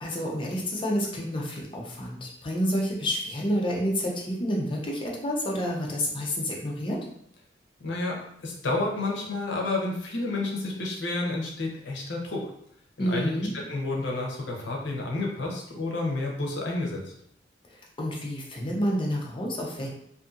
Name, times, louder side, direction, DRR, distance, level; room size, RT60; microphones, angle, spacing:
voice 1, 0.0-7.0 13.0-13.5 18.0-19.9, equal, 30° left, -2 dB, 0.5 m, -29 dB
voice 2, 7.8-12.5 13.0-13.3 13.7-17.0, left 2 dB, 75° left, -1 dB, 0.7 m, -30 dB
2.6 x 2.5 x 2.4 m, 0.71 s
head